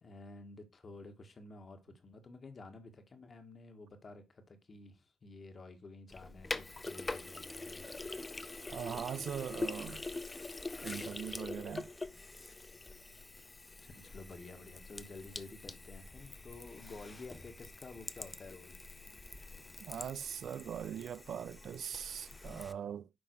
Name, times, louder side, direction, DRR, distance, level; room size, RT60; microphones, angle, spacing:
voice 1, 0.0-7.9 13.8-18.8, left 3 dB, 40° left, 1.6 m, -51 dB
Sink (filling or washing), 6.1-22.7, left 2 dB, 20° left, 0.5 m, -45 dB
voice 2, 8.7-10.1 10.8-11.9 19.8-23.1, right 9 dB, 60° right, 0.3 m, -41 dB
10.0 x 3.6 x 4.6 m
cardioid pair, 90°, 0 cm